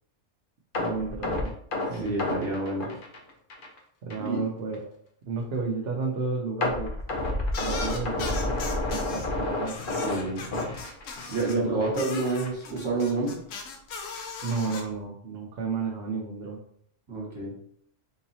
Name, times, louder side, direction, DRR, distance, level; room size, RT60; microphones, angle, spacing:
sound 1, 0.7-3.8 4.1-4.3 4.7-4.8 6.6-11.5 11.8-12.0 12.4-12.5, left 2 dB, 50° left, 0.7 m, -30 dB
voice 1, 0.8-1.5 1.9-2.1 4.0-4.8 5.3-7.0 7.6-9.8 10.5-10.7 11.8-11.9 14.4-16.6, right 4 dB, 60° right, -2 dB, 0.8 m, -32 dB
voice 2, 1.9-2.9 4.2-4.4 10.0-10.5 11.3-13.4 17.1-17.6, right 3 dB, 25° right, -6 dB, 1.5 m, -28 dB
sound 2, 7.5-9.3 9.6-11.6 11.9-14.8, left 4 dB, 90° left, 1.0 m, -38 dB
3.8 x 2.9 x 2.7 m, 0.65 s
omnidirectional pair, 1.3 m